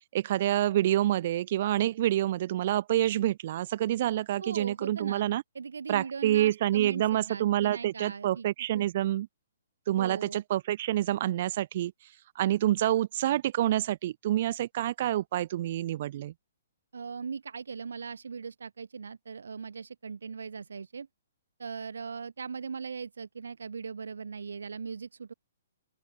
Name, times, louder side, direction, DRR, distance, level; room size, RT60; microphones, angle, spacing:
voice 1, 0.1-5.4 5.9-9.3 9.9-11.9 12.3-16.3, right 13 dB, 50° right, 1.2 m, -27 dB
voice 2, 4.4-5.3 5.5-8.5 8.7-8.9 10.0-10.4 16.9-21.1 21.6-25.3, right 5 dB, 75° right, 0.6 m, -39 dB
open air
figure-of-eight pair, 125°, 0 cm